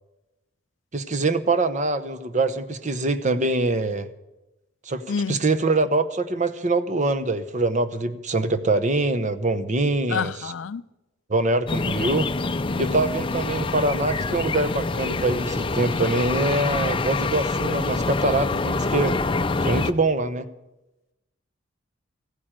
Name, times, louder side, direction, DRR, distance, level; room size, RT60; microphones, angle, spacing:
voice 1, 0.9-4.1 4.9-10.5 11.3-12.3 12.8-19.2 19.6-20.5, right 2 dB, 40° right, 0.9 m, -24 dB
voice 2, 5.1-5.5 10.1-10.8, left 6 dB, 80° left, 0.4 m, -28 dB
sound 1, 11.7-19.9, left 3 dB, 25° left, 0.5 m, -26 dB
15.0 x 9.4 x 8.9 m
head